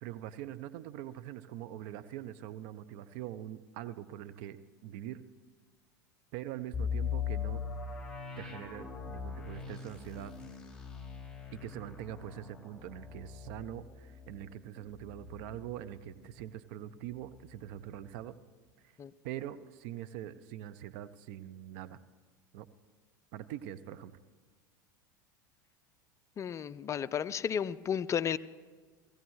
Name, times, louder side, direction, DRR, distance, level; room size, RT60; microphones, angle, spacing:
voice 1, 0.0-4.6 4.8-5.2 6.3-7.6 8.4-10.3 11.5-18.4 19.2-22.0 22.5-22.7 23.3-24.1, right 12 dB, 60° right, 13 dB, 0.6 m, -43 dB
sound 1, 6.7-16.5 16.8-16.9 17.4-17.7, left 7 dB, 5° left, 2.7 m, -40 dB
voice 2, 26.4-28.4, left 8 dB, 30° left, 17 dB, 0.4 m, -33 dB
17.5 x 15.5 x 3.1 m, 1.5 s
hypercardioid pair, 85°, 11 cm